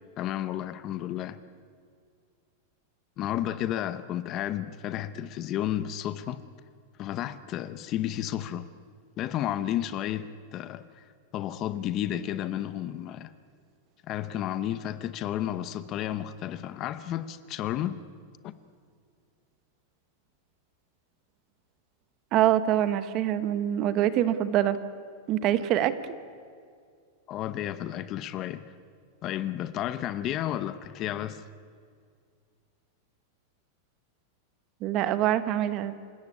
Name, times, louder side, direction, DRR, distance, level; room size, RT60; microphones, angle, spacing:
voice 1, 0.2-1.4 3.2-6.4 7.0-8.7 9.2-11.1 11.3-13.3 14.1-18.0 18.4-18.5 27.3-28.7 29.2-31.4, left 12 dB, 25° left, 0.7 m, -32 dB
voice 2, 22.3-24.8 25.3-26.2 34.8-35.9, right 11 dB, 30° right, 1.1 m, -25 dB
27.0 x 17.0 x 9.7 m
supercardioid pair, 170°, 0 cm